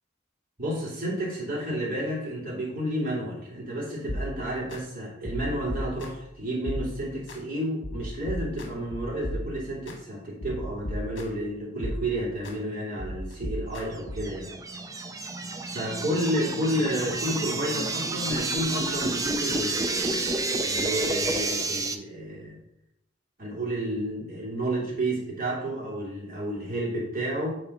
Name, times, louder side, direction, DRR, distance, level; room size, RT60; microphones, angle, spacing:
voice 1, 0.6-14.6 15.7-20.3 20.6-22.6 23.4-27.5, right 1 dB, 50° right, -5 dB, 3.0 m, -31 dB
sound 1, 4.1-4.8 5.2-6.3 6.7-7.4 7.8-10.0 10.4-11.5 11.8-12.6 13.0-14.4, equal, 75° left, 1.4 m, -36 dB
sound 2, 14.0-21.9, right 2 dB, 20° right, 0.5 m, -29 dB
8.9 x 4.1 x 4.2 m, 0.82 s
head